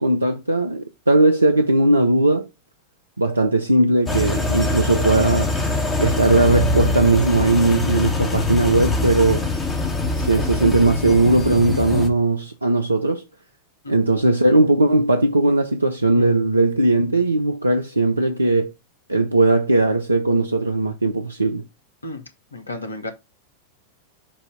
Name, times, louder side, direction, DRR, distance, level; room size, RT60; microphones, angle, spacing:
voice 1, 0.0-2.5 3.2-5.5 6.0-9.5 10.2-13.2 13.9-18.7 19.1-21.6, right 2 dB, 80° right, 0.5 m, -18 dB
sound 1, 4.1-12.1, left 2 dB, 15° left, 1.4 m, -23 dB
voice 2, 22.5-23.1, left 2 dB, 80° left, 1.1 m, -32 dB
6.9 x 2.7 x 5.3 m
figure-of-eight pair, 90°, 0 cm